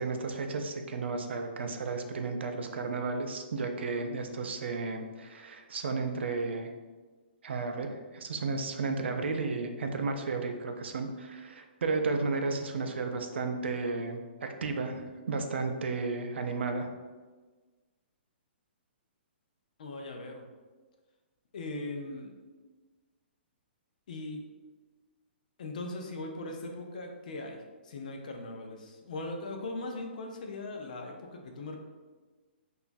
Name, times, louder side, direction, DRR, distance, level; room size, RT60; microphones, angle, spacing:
voice 1, 0.0-6.7 7.4-16.9, right 3 dB, 80° right, 5 dB, 0.4 m, -33 dB
voice 2, 19.8-20.5 21.5-22.3 24.1-24.5 25.6-31.8, left 2 dB, 45° left, 3 dB, 0.4 m, -39 dB
2.9 x 2.3 x 2.5 m, 1.3 s
hypercardioid pair, 175°, 6 cm